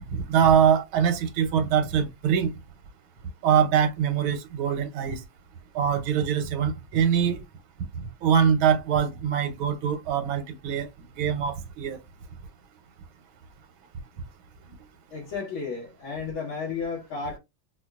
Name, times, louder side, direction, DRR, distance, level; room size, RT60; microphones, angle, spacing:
voice 1, 0.1-2.5 3.4-5.2 5.7-7.4 8.2-10.9 11.2-12.0, right 8 dB, 90° right, 1.6 m, -23 dB
voice 2, 15.1-17.4, left 5 dB, 85° left, 2.1 m, -33 dB
4.4 x 2.3 x 2.3 m
omnidirectional pair, 2.2 m